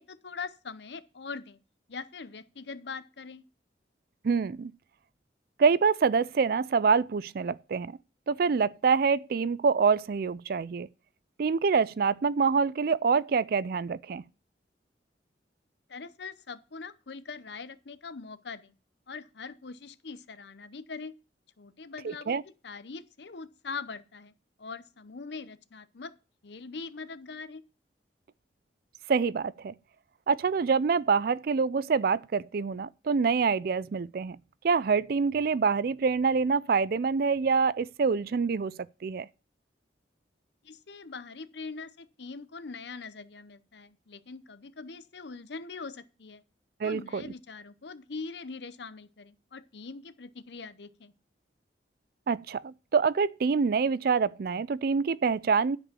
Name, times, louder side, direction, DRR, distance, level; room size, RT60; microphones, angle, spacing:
voice 1, 0.0-1.6 1.9-3.4 15.9-18.7 19.1-21.1 21.6-24.3 24.6-26.1 26.4-27.6 40.6-46.4 46.8-51.1, left 4 dB, 75° left, 0.8 m, -42 dB
voice 2, 4.2-4.7 5.6-8.0 8.3-10.9 11.4-14.2 22.0-22.4 29.1-29.7 30.3-34.4 34.6-39.3 46.8-47.2 52.3-55.8, right 5 dB, 55° right, 0.4 m, -26 dB
9.9 x 5.2 x 6.9 m
head